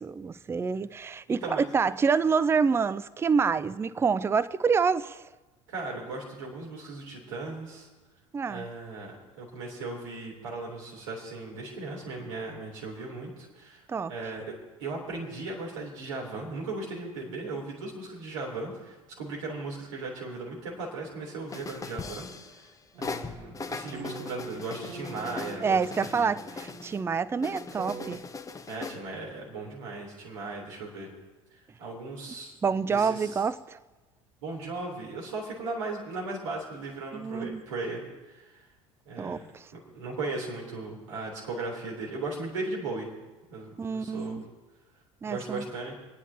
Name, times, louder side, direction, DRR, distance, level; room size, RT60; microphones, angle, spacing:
voice 1, 0.0-5.2 8.3-8.7 13.9-14.1 25.6-28.2 32.6-33.8 37.1-37.6 39.2-39.7 43.8-44.4 45.2-45.6, right 5 dB, 15° right, 0.4 m, -27 dB
voice 2, 1.3-1.6 5.7-7.9 8.5-13.8 14.1-14.5 14.8-22.7 23.0-25.8 26.1-26.4 28.7-31.1 31.8-32.5 32.9-33.4 34.4-38.5 39.0-39.5 39.8-43.1 43.5-44.4 45.2-46.0, right 3 dB, 75° right, 3.5 m, -37 dB
sound 1, 21.5-22.7 23.0-27.0 27.4-29.0, left 4 dB, 20° left, 1.0 m, -40 dB
sound 2, 22.9-28.2, right 4 dB, 50° right, 1.5 m, -44 dB
30.0 x 10.0 x 2.9 m
figure-of-eight pair, 65°, 17 cm